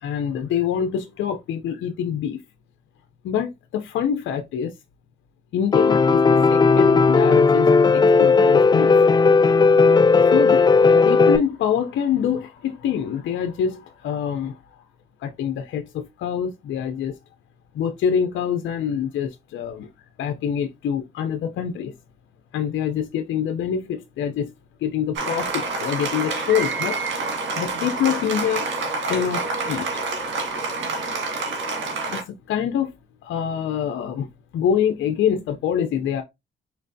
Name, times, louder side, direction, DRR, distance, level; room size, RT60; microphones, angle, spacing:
voice 1, 0.0-2.4 3.2-4.7 5.5-9.1 10.3-10.7 11.0-14.6 15.2-17.2 17.7-19.9 20.2-21.9 22.5-24.5 24.8-27.0 27.6-28.7 29.1-30.2 32.1-32.9 33.2-34.3 34.5-36.2, left 8 dB, 70° left, 0.6 m, -25 dB
Piano, 5.7-11.4, left 4 dB, 20° left, 0.4 m, -15 dB
Applause, 25.1-32.2, right 3 dB, 75° right, 1.8 m, -27 dB
4.5 x 3.3 x 2.6 m
cardioid pair, 90°, 20 cm